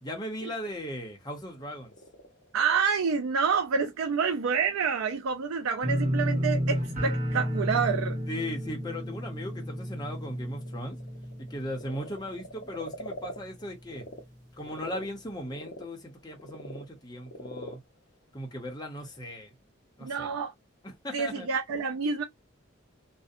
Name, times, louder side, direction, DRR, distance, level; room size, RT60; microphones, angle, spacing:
voice 1, 0.0-1.9 8.3-11.0 11.4-14.1 14.6-17.8 18.3-19.5 20.0-20.3 20.8-21.5, left 1 dB, 20° left, 0.7 m, -38 dB
Frog, 1.5-14.2 14.6-19.2, left 1 dB, 60° left, 0.6 m, -47 dB
voice 2, 2.5-8.2 20.0-20.5 21.1-22.2, right 5 dB, 85° right, 0.4 m, -28 dB
sound 1, 5.8-12.7 13.0-13.5 13.9-14.0, equal, 35° right, 0.9 m, -32 dB
2.6 x 2.1 x 2.5 m
head